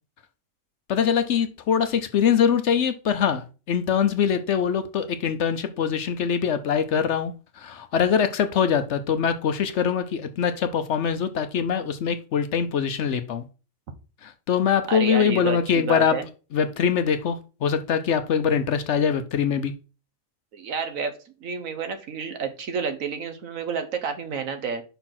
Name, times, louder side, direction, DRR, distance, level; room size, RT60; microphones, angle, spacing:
voice 1, 0.9-13.4 14.2-16.2 16.5-19.7, left 7 dB, 60° left, 10 dB, 0.9 m, -23 dB
voice 2, 14.9-16.3 20.5-21.1 21.4-24.8, right 5 dB, 70° right, 7 dB, 1.4 m, -30 dB
5.6 x 4.3 x 5.8 m, 0.34 s
omnidirectional pair, 1.5 m